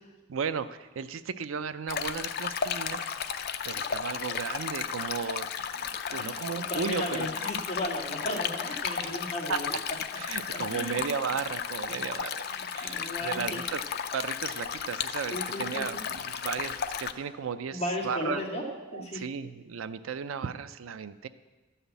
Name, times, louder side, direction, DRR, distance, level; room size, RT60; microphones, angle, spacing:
voice 1, 0.3-3.3 3.6-5.5 5.8-7.3 9.0-9.2 9.5-9.6 10.2-12.5 12.7-13.8 14.1-21.3, right 6 dB, 75° right, 12 dB, 0.5 m, -35 dB
Stream, 1.9-17.1, left 7 dB, 50° left, 0.5 m, -34 dB
voice 2, 6.1-9.7 10.1-11.0 11.9-12.0 12.4-13.6 15.3-15.9 17.7-18.6 18.9-19.2, left 1 dB, 30° left, -3 dB, 2.2 m, -35 dB
12.0 x 5.7 x 8.1 m, 1.2 s
head